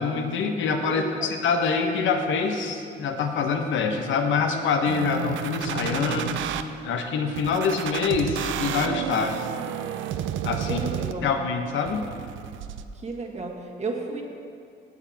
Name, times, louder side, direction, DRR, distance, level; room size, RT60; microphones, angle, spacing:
voice 1, 0.0-6.4 6.8-9.4 10.4-10.8 11.2-12.1, left 5 dB, 75° left, 5 dB, 0.9 m, -25 dB
voice 2, 0.9-1.4 10.6-11.3 12.9-14.2, right 3 dB, 35° right, 1 dB, 1.4 m, -33 dB
sound 1, 4.9-6.6 7.4-11.4 11.9-12.8, right 9 dB, 75° right, 0.5 m, -31 dB
16.0 x 7.2 x 2.8 m, 2.4 s
cardioid pair, 90°, 20 cm